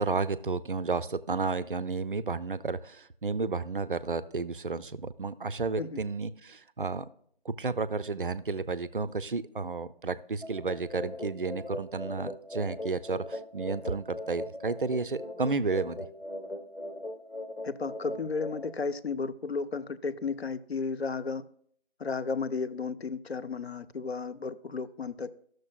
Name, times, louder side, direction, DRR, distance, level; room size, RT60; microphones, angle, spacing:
voice 1, 0.0-7.1 7.4-16.1, right 4 dB, 55° right, 0.4 m, -32 dB
sound 1, 10.4-18.6, left 1 dB, 85° left, 1.3 m, -40 dB
voice 2, 17.6-21.4 22.0-25.3, left 4 dB, 70° left, 0.6 m, -33 dB
14.0 x 6.5 x 2.3 m
figure-of-eight pair, 170°, 32 cm